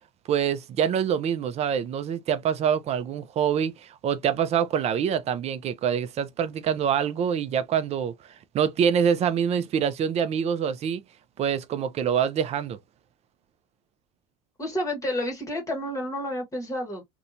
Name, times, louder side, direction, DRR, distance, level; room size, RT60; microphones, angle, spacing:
voice 1, 0.3-11.0 11.4-12.8, right 8 dB, 40° right, 0.4 m, -25 dB
voice 2, 14.6-17.0, left 1 dB, 20° left, 1.0 m, -30 dB
2.7 x 2.2 x 2.5 m
hypercardioid pair, 85°, 17 cm